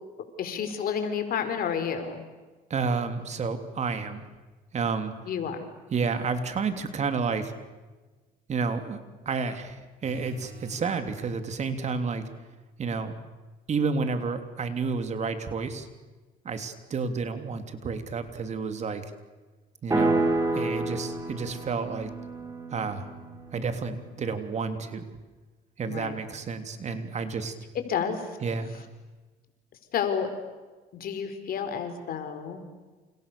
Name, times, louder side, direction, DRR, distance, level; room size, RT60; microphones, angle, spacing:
voice 1, 0.4-2.3 5.3-5.7 25.9-26.2 27.9-28.3 29.9-30.3 30.9-32.6, left 7 dB, 60° left, 8 dB, 4.8 m, -30 dB
voice 2, 2.7-4.2 4.7-5.1 5.9-7.5 8.5-12.3 12.8-13.1 13.7-15.9 16.4-19.0 19.8-20.3 20.5-22.1 22.7-23.1 23.5-25.1 25.8-27.5 28.4-28.9, right 5 dB, 40° right, 8 dB, 3.2 m, -30 dB
sound 1, 10.0-10.9 17.3-17.4, right 5 dB, 60° right, 3.4 m, -46 dB
sound 2, 19.9-24.0, right 2 dB, 20° right, 5.5 m, -29 dB
30.0 x 28.5 x 7.0 m, 1.3 s
cardioid pair, 110°, 17 cm